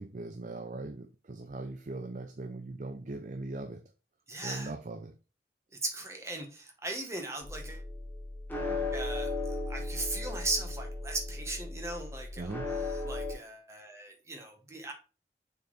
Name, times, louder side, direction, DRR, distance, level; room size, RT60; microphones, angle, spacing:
voice 1, 0.0-3.8 4.4-5.1 12.4-12.7, right 2 dB, 45° right, 0.5 m, -40 dB
voice 2, 4.3-4.7 5.8-7.8 8.9-12.6 12.9-14.9, right 2 dB, 15° right, 1.2 m, -38 dB
sound 1, 7.4-13.3, left 2 dB, 10° left, 1.3 m, -36 dB
6.8 x 4.3 x 3.2 m
head